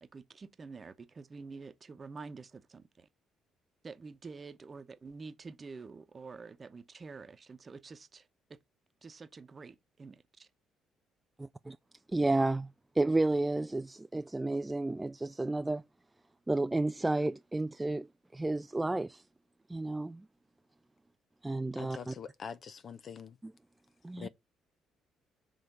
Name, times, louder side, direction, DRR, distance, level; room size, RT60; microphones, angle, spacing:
voice 1, 0.0-3.1 3.8-8.6 9.0-10.5, right 4 dB, 35° right, 1.0 m, -48 dB
voice 2, 11.4-11.8 12.1-12.7 13.0-15.8 16.5-18.1 18.3-19.2 19.7-20.2 21.4-22.1 23.4-23.5 24.0-24.3, right 2 dB, 15° right, 0.3 m, -31 dB
voice 3, 21.8-23.4 24.2-24.3, left 7 dB, 50° left, 0.7 m, -44 dB
6.5 x 3.3 x 5.4 m
hypercardioid pair, 50°, 0 cm